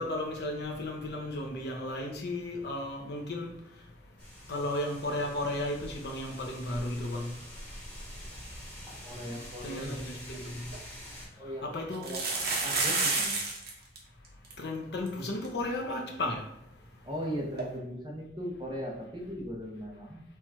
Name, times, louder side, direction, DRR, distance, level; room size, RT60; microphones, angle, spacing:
voice 1, 0.0-3.5 4.5-7.4 9.6-10.7 11.6-12.1 14.6-16.5, left 1 dB, 65° left, 0.7 m, -34 dB
sound 1, 4.2-11.3, equal, 10° left, 1.2 m, -46 dB
voice 2, 9.0-10.1 11.4-12.2 12.6-13.3 17.0-20.2, equal, 25° right, 1.0 m, -38 dB
sound 2, 10.3-10.4 10.7-10.8 11.9-13.7 14.0-14.1 14.2-14.5 15.1-15.2 15.4-15.5 17.6-17.7, right 3 dB, 60° right, 1.0 m, -29 dB
4.4 x 2.4 x 4.3 m
head